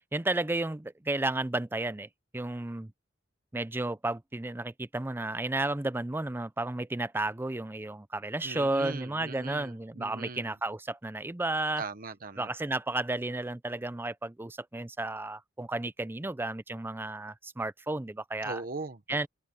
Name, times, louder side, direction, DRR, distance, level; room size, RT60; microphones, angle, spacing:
voice 1, 0.1-2.1 2.3-2.9 3.5-11.8 12.4-18.6 19.1-19.3, right 2 dB, 10° right, 0.5 m, -32 dB
voice 2, 8.4-10.5 11.8-12.5 18.4-19.3, right 3 dB, 50° right, 1.3 m, -40 dB
open air
head